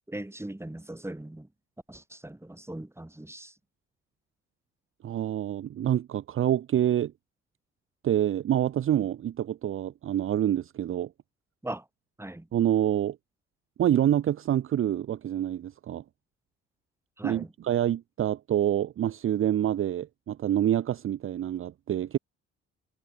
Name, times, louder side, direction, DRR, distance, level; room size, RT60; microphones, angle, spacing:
voice 1, 0.1-1.5 1.9-3.5 11.6-11.8 12.2-12.5 17.2-17.5, right 1 dB, 10° right, 3.4 m, -39 dB
voice 2, 5.0-7.1 8.0-11.1 12.5-13.2 13.8-16.0 17.2-22.2, right 11 dB, 45° right, 0.6 m, -27 dB
supercardioid pair, 60°, 30 cm